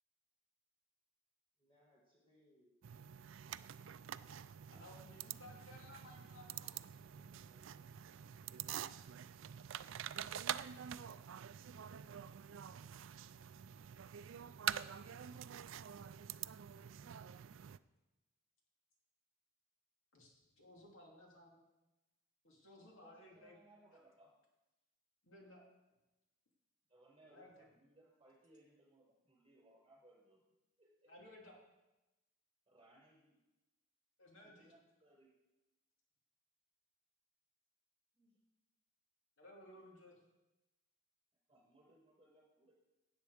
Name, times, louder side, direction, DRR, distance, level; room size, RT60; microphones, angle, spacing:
voice 1, 1.6-2.8 7.0-8.0, equal, 20° left, -5 dB, 2.0 m, -73 dB
sound 1, 2.8-17.8, right 9 dB, 60° right, 0.4 m, -46 dB
voice 2, 4.7-6.9 20.1-21.6 22.4-23.6 25.2-25.6 27.2-27.7 31.1-31.6 34.2-34.7 39.4-40.2, left 1 dB, 65° left, -1 dB, 2.9 m, -58 dB
voice 3, 22.8-24.3 26.9-30.4 30.8-31.1 32.7-33.4 34.3-35.3 38.1-38.4 41.5-42.7, right 1 dB, 25° right, -4 dB, 5.4 m, -67 dB
17.0 x 8.1 x 4.9 m, 1.0 s
head